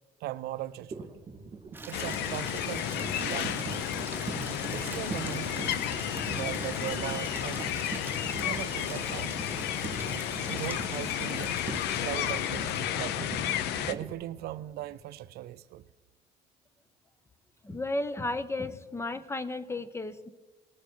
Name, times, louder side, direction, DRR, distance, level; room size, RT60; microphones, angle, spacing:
voice 1, 0.2-1.1 1.9-2.9 3.2-3.8 4.7-5.8 6.3-7.8 8.4-9.4 10.5-11.6 12.0-13.3 13.8-15.8, right 14 dB, 70° right, 0.4 m, -39 dB
sound 1, 0.9-15.0, right 4 dB, 35° right, 2.9 m, -42 dB
Water tap faucet / Liquid, 1.7-13.3, right 3 dB, 10° right, 0.9 m, -44 dB
sound 2, 1.9-13.9, left 11 dB, 85° left, 0.6 m, -32 dB
voice 2, 17.6-20.3, left 2 dB, 15° left, 0.7 m, -33 dB
19.0 x 6.9 x 4.5 m
cardioid pair, 110°, 17 cm